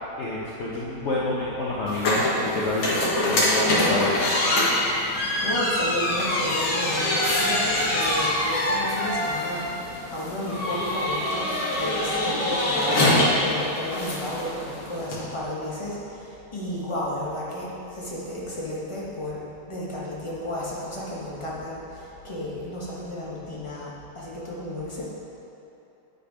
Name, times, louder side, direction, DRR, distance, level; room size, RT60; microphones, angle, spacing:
voice 1, 0.2-4.2, left 2 dB, 60° left, -6 dB, 0.7 m, -28 dB
sound 1, 1.9-15.2, left 1 dB, 75° left, 2.4 m, -24 dB
voice 2, 5.4-9.6 10.1-13.2 13.4-15.9 16.5-17.7 17.9-19.4 19.7-21.8 22.2-23.9 24.2-25.0, left 1 dB, 15° left, -6 dB, 1.2 m, -32 dB
8.9 x 5.5 x 5.0 m, 3.0 s
omnidirectional pair, 2.3 m